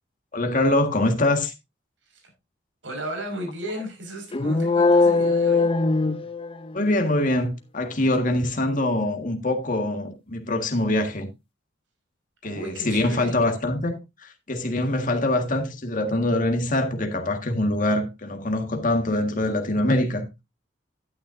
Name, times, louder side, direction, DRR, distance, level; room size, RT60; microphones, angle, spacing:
voice 1, 0.3-1.5 6.7-11.3 12.4-20.2, left 1 dB, 45° left, 1.7 m, -24 dB
voice 2, 2.8-5.7 12.4-13.4, right 1 dB, 80° right, 5.4 m, -35 dB
sound 1, 4.3-6.9, left 3 dB, 30° left, 0.6 m, -20 dB
12.0 x 9.8 x 2.6 m
head